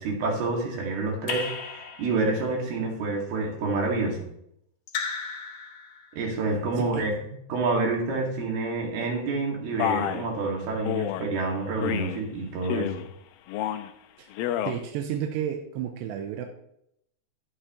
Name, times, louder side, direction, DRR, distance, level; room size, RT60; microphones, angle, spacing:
voice 1, 0.0-4.2 6.1-7.1 7.5-12.9, right 3 dB, 70° right, -1 dB, 4.4 m, -28 dB
Raindrop / Drip, 1.3-2.5 4.9-6.2, left 5 dB, 70° left, 3.4 m, -35 dB
voice 2, 6.8-7.1 14.2-14.3 14.7-16.5, right 9 dB, 90° right, 4 dB, 3.1 m, -32 dB
Male speech man speaking, 9.8-10.3 10.9-11.3 11.8-12.2 12.6-13.1 13.5-13.9 14.3-14.8, left 11 dB, 85° left, 2.1 m, -29 dB
12.5 x 11.5 x 3.2 m, 0.74 s
omnidirectional pair, 4.8 m